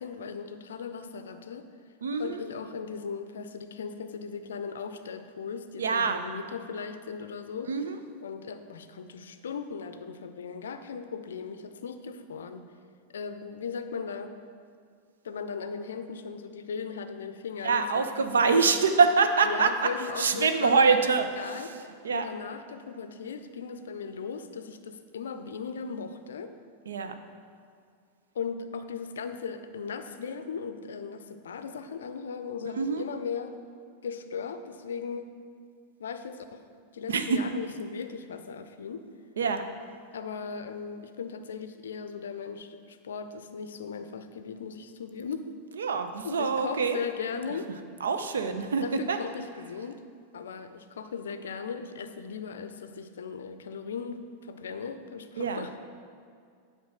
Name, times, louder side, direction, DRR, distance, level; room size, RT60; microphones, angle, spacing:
voice 1, 0.0-1.7 2.2-7.7 8.2-12.7 13.1-14.3 15.2-18.8 19.4-21.7 22.1-26.5 28.3-33.6 34.0-35.3 36.0-36.6 36.9-39.0 40.1-45.4 46.2-47.7 48.8-50.0 50.3-55.7, left 6 dB, 65° left, 10 dB, 0.5 m, -37 dB
voice 2, 2.0-2.4 5.8-6.3 7.7-8.0 17.6-21.7 22.0-22.3 26.9-27.1 32.8-33.0 37.1-37.4 39.4-39.6 45.7-47.0 48.0-49.2 55.4-55.7, right 5 dB, 65° right, 8 dB, 0.6 m, -25 dB
9.3 x 4.5 x 6.1 m, 2.2 s
figure-of-eight pair, 90°, 0 cm